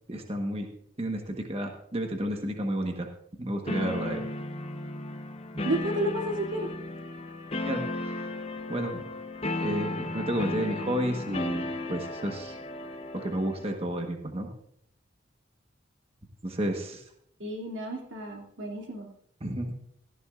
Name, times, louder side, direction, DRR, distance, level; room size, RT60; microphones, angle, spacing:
voice 1, 0.1-0.7 1.0-3.1 3.4-4.2 7.6-8.3 8.7-9.0 9.6-12.6 13.1-14.5 16.4-17.0 19.4-19.7, right 1 dB, 30° right, 3 dB, 1.3 m, -31 dB
sound 1, 3.7-13.7, left 2 dB, 30° left, 0.9 m, -35 dB
voice 2, 5.6-6.7 17.4-19.1, right 1 dB, 90° right, 0 dB, 2.8 m, -31 dB
17.0 x 14.0 x 2.5 m, 0.69 s
head